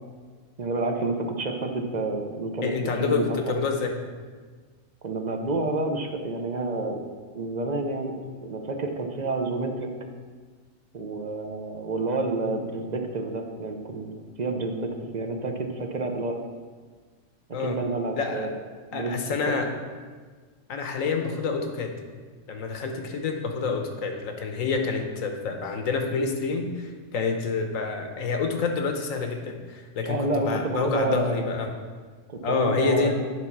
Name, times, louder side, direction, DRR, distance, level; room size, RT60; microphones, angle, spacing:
voice 1, 0.6-2.7 3.0-3.5 5.0-7.1 7.3-8.1 8.4-9.9 10.9-16.4 17.6-18.5 18.9-19.5 30.0-31.4 32.3-33.1, right 2 dB, 45° right, 4 dB, 0.6 m, -29 dB
voice 2, 2.6-3.9 17.5-17.8 18.2-18.5 18.9-19.7 20.7-21.9 22.5-31.7 32.4-33.1, left 4 dB, 75° left, 4 dB, 1.3 m, -27 dB
9.6 x 4.1 x 6.0 m, 1.5 s
omnidirectional pair, 1.4 m